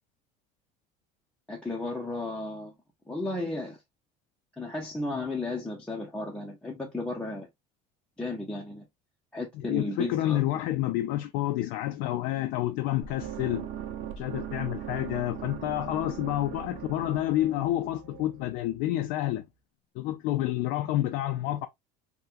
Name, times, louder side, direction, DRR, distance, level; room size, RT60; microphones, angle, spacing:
voice 1, 1.5-2.7 3.1-3.8 4.6-7.5 8.2-8.9 9.3-10.4, left 2 dB, 5° left, 0.6 m, -34 dB
voice 2, 9.5-13.7 14.2-19.4 19.9-21.7, left 14 dB, 70° left, 0.4 m, -29 dB
sound 1, 13.0-19.1, right 9 dB, 50° right, 0.6 m, -40 dB
3.6 x 2.2 x 2.6 m
cardioid pair, 145°, 17 cm